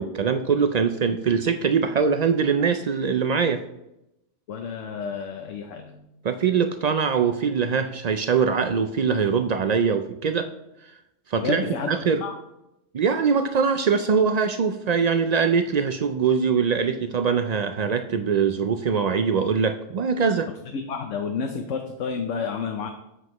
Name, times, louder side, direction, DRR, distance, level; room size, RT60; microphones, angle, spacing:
voice 1, 0.0-3.6 6.2-10.5 10.8-10.9 11.3-12.2 12.9-20.5, right 6 dB, 80° right, 8 dB, 0.3 m, -22 dB
voice 2, 4.5-6.1 11.4-11.9 12.2-12.3 20.7-22.9, left 5 dB, 80° left, 4 dB, 1.1 m, -30 dB
7.8 x 7.7 x 3.0 m, 0.85 s
omnidirectional pair, 1.3 m